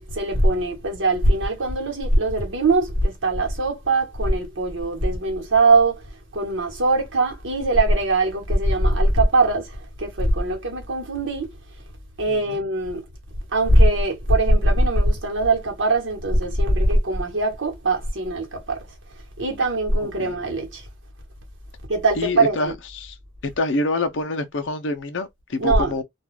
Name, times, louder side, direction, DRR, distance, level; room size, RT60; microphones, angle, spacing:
voice 1, 0.0-11.6 12.2-13.0 13.5-18.9 19.4-20.9 21.9-22.7 25.6-25.9, right 2 dB, 85° right, 1.1 m, -21 dB
voice 2, 12.3-12.6 20.2-20.3 22.2-23.1 23.6-26.0, left 2 dB, 75° left, 0.5 m, -26 dB
2.3 x 2.3 x 3.1 m
head